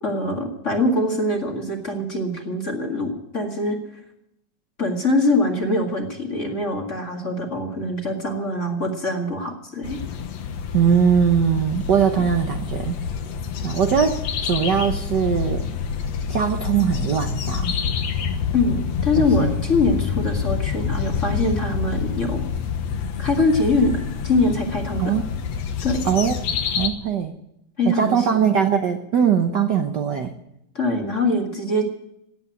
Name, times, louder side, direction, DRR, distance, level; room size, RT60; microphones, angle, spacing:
voice 1, 0.0-3.8 4.8-10.0 18.5-22.4 23.2-25.1 25.8-26.0 27.8-28.5 30.7-31.9, left 2 dB, 30° left, 3 dB, 2.0 m, -23 dB
sound 1, 9.8-26.9, left 7 dB, 65° left, 2.3 m, -27 dB
voice 2, 10.7-13.0 13.6-15.7 16.3-17.8 19.2-19.5 25.0-25.2 26.0-26.3 26.8-27.3 27.9-30.3, right 7 dB, 75° right, 6 dB, 0.9 m, -21 dB
17.5 x 8.7 x 9.2 m, 0.79 s
omnidirectional pair, 3.3 m